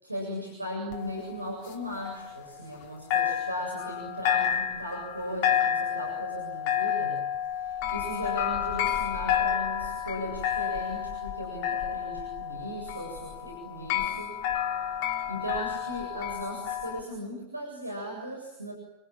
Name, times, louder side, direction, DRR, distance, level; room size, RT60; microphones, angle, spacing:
voice 1, 0.0-7.2 7.5-14.3 15.3-18.7, equal, 85° right, 0 dB, 7.4 m, -37 dB
sound 1, 0.9-2.8 3.1-17.0, left 9 dB, 45° left, 3.9 m, -30 dB
29.0 x 27.0 x 7.4 m, 0.93 s
figure-of-eight pair, 90°, 0 cm